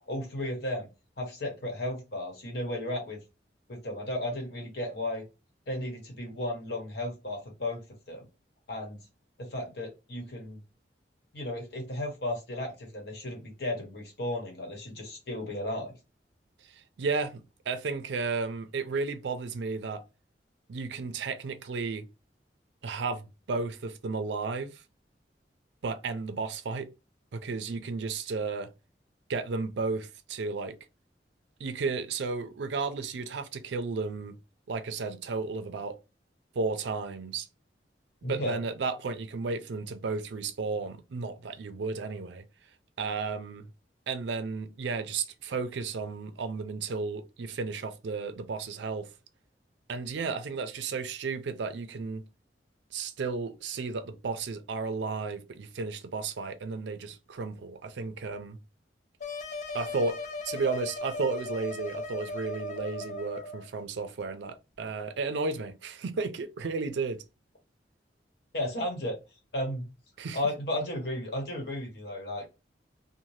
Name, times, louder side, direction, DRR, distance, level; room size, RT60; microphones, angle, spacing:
voice 1, 0.1-0.9 1.2-3.2 3.7-5.2 5.7-7.8 8.1-8.3 8.7-9.0 9.4-10.6 11.3-15.9 38.2-38.6 68.5-69.2 69.5-69.9 70.3-72.5, left 1 dB, 65° left, 1.0 m, -34 dB
voice 2, 16.7-20.0 20.7-22.1 22.8-24.8 25.8-26.9 27.3-28.7 29.3-30.8 31.6-34.4 34.7-36.0 36.5-37.5 38.3-42.4 43.0-43.7 44.1-49.1 49.9-52.3 52.9-58.6 59.7-60.2 60.4-67.2 70.2-70.4, right 4 dB, 80° right, 0.4 m, -33 dB
sound 1, 59.2-63.7, left 2 dB, 40° left, 0.4 m, -38 dB
2.6 x 2.1 x 3.1 m
head